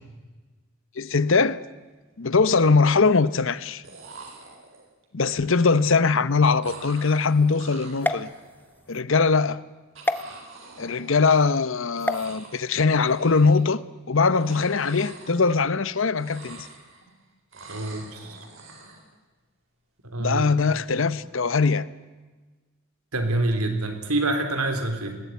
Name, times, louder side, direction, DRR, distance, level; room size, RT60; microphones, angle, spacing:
voice 1, 1.0-1.6 2.2-3.8 5.1-8.3 8.9-9.6 10.8-13.8 14.1-16.7 20.2-21.9, left 4 dB, 60° left, 0.8 m, -21 dB
sound 1, 1.6-1.7 1.9-2.5 3.6-3.7 3.8-5.0 6.6-8.8 9.9-11.7 11.9-12.7 13.0-13.8 14.2-17.1 17.5-19.1, right 3 dB, 60° right, 4.1 m, -45 dB
sound 2, 8.0-9.0 10.0-10.2 12.0-12.3, left 1 dB, 10° left, 0.7 m, -28 dB
voice 2, 17.7-18.4 20.0-20.5 23.1-25.1, right 2 dB, 85° right, 3.4 m, -26 dB
20.5 x 17.5 x 9.3 m
head